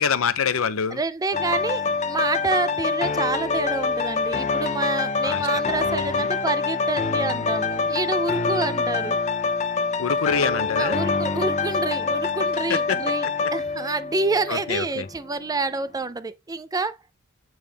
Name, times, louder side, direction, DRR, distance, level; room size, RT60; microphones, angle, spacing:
voice 1, 0.0-1.0 5.2-6.3 10.0-11.0 12.7-13.1 13.4-13.5 14.5-15.1, left 6 dB, 70° left, 0.7 m, -26 dB
voice 2, 0.9-9.2 10.8-17.0, right 3 dB, 15° right, 0.4 m, -28 dB
sound 1, 1.3-15.0 15.5-15.6, left 4 dB, 35° left, 0.6 m, -25 dB
8.7 x 3.6 x 3.4 m
head